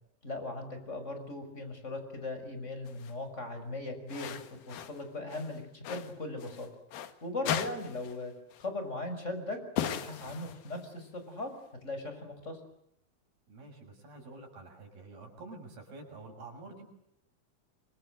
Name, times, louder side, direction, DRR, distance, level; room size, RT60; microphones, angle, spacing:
voice 1, 0.2-4.4 4.7-6.7 7.2-8.3 8.6-9.6 9.9-11.5 11.8-12.6, left 2 dB, 15° left, 7 dB, 5.9 m, -38 dB
sound 1, 2.9-3.1 4.1-5.0 5.3-7.1 7.4-8.2 8.5-8.7 9.8-10.9, left 9 dB, 70° left, 3.2 m, -37 dB
voice 2, 13.5-16.9, right 3 dB, 70° right, 2 dB, 8.5 m, -48 dB
29.0 x 25.5 x 7.9 m, 0.75 s
omnidirectional pair, 4.6 m